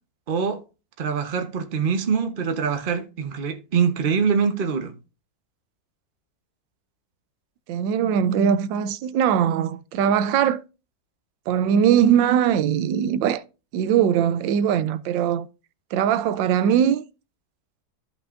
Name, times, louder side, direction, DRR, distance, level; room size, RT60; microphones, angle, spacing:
voice 1, 0.3-0.6 1.0-4.9, right 6 dB, 35° right, 0.9 m, -24 dB
voice 2, 7.7-10.6 11.5-13.4 13.7-15.5 15.9-17.0, right 9 dB, 90° right, 1.3 m, -21 dB
14.0 x 5.6 x 2.5 m
omnidirectional pair, 2.0 m